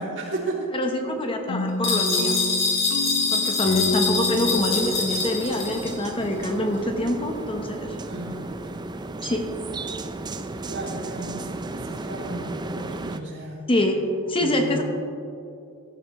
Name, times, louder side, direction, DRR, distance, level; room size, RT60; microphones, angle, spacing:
voice 1, 0.0-0.7 8.1-8.6 10.7-13.6 14.4-14.8, right 2 dB, 60° right, -3 dB, 2.8 m, -33 dB
voice 2, 0.7-2.4 3.3-7.9 9.2-9.5 13.7-14.8, left 1 dB, 25° left, 3 dB, 1.0 m, -25 dB
sound 1, 1.5-6.4, left 2 dB, 90° left, 0.6 m, -31 dB
sound 2, 1.8-6.0, left 4 dB, 55° left, 3.1 m, -25 dB
sound 3, 4.3-13.2, right 2 dB, 20° right, 0.4 m, -34 dB
17.0 x 12.5 x 3.1 m, 2.6 s
head